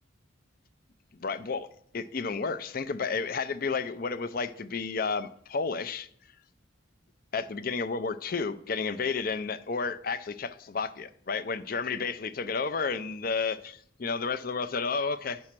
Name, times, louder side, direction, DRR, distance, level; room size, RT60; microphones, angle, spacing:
voice 1, 1.2-1.7 1.9-6.1 7.3-15.4, left 4 dB, 45° left, 0.5 m, -31 dB
9.6 x 6.3 x 5.9 m
head